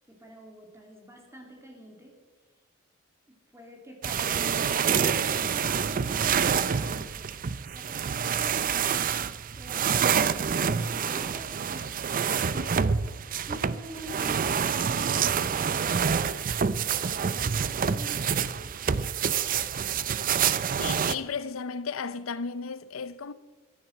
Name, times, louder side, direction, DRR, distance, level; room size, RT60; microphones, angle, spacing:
voice 1, 0.1-2.1 3.3-7.2 7.7-8.7 9.6-12.9 13.5-15.9 16.8-18.7, equal, 15° right, 2.7 m, -46 dB
sound 1, 4.0-21.2, right 7 dB, 45° right, 0.5 m, -27 dB
voice 2, 20.8-23.3, left 5 dB, 80° left, 0.7 m, -34 dB
15.0 x 9.9 x 7.6 m
head